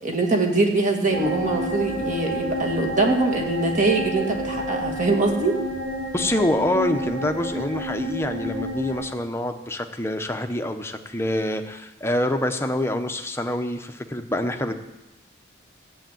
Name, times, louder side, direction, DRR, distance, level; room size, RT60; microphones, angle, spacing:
voice 1, 0.0-5.6, right 2 dB, 35° right, 2 dB, 2.1 m, -23 dB
sound 1, 1.1-9.0, equal, 70° right, 4.2 m, -30 dB
voice 2, 6.1-14.7, left 1 dB, 10° left, 6 dB, 0.9 m, -26 dB
14.5 x 8.0 x 9.3 m, 0.96 s
head